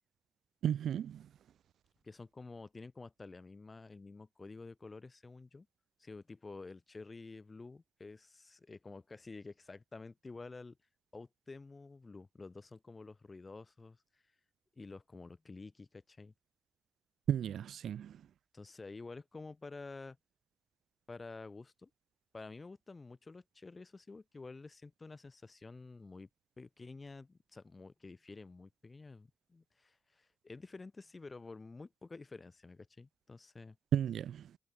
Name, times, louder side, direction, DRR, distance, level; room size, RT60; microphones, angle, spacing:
voice 1, 0.6-1.3 17.3-18.2 33.9-34.6, right 9 dB, 85° right, 0.7 m, -34 dB
voice 2, 2.0-5.7 6.0-10.8 11.1-14.0 14.8-16.3 18.5-20.2 21.1-21.9 22.3-26.3 26.6-33.8, left 3 dB, 40° left, 4.2 m, -50 dB
cardioid pair, 50°, 0 cm